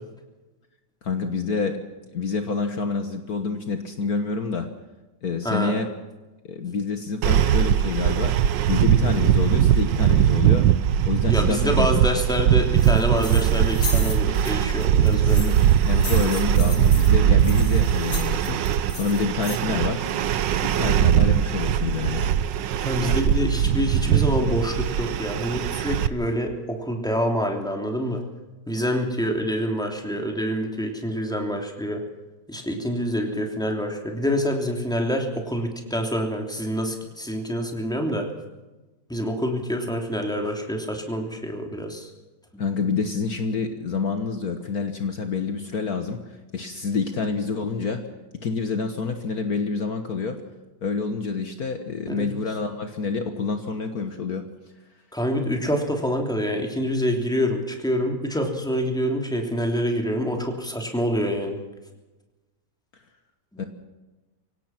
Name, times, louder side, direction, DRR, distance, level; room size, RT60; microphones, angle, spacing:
voice 1, 1.0-1.8 2.1-4.7 5.2-5.9 6.5-8.3 8.7-10.7 11.0-11.9 15.1-15.5 15.9-18.6 18.9-20.0 20.5-22.3 23.0-23.2 42.6-46.2 46.5-48.0 48.4-50.4 50.8-54.4 63.6-63.7, left 4 dB, 55° left, 6 dB, 1.8 m, -27 dB
voice 2, 5.4-5.8 11.3-15.5 22.8-28.2 28.7-32.0 32.5-38.3 39.1-42.1 42.5-42.6 52.1-52.3 55.1-61.6 63.5-63.6, equal, ahead, 2 dB, 3.1 m, -26 dB
sound 1, 7.2-26.1, right 10 dB, 80° right, 1.5 m, -20 dB
sound 2, 12.8-19.6, left 4 dB, 75° left, 3.4 m, -37 dB
25.5 x 17.0 x 6.0 m, 1.1 s
omnidirectional pair, 1.9 m